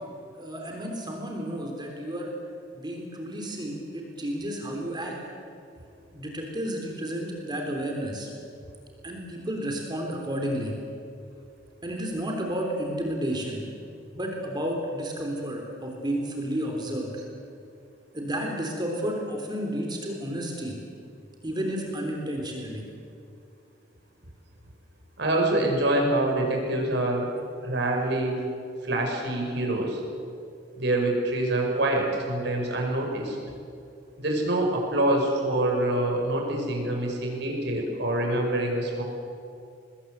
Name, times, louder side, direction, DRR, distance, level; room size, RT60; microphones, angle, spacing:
voice 1, 0.3-2.3 2.7-5.2 6.1-8.3 9.0-10.7 11.8-13.6 14.1-17.1 18.1-20.8 21.4-22.8, equal, 25° right, 1 dB, 3.4 m, -31 dB
voice 2, 25.2-27.3 27.6-28.4 28.8-30.0 30.8-33.4 34.2-39.0, right 1 dB, 65° right, 1 dB, 5.8 m, -25 dB
23.5 x 20.5 x 8.1 m, 2.4 s
head